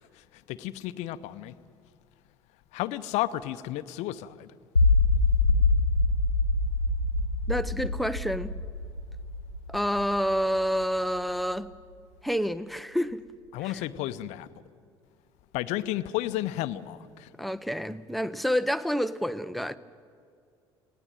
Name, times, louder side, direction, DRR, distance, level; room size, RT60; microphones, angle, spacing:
voice 1, 0.5-1.5 2.7-4.5 13.5-14.5 15.5-17.3, left 14 dB, 55° left, 0.8 m, -32 dB
sound 1, 4.8-10.8, left 3 dB, 90° left, 1.0 m, -25 dB
voice 2, 7.5-8.5 9.7-11.7 12.2-13.2 13.6-13.8 17.4-19.8, equal, ahead, 0.7 m, -28 dB
19.5 x 17.0 x 9.2 m
figure-of-eight pair, 60°, 14 cm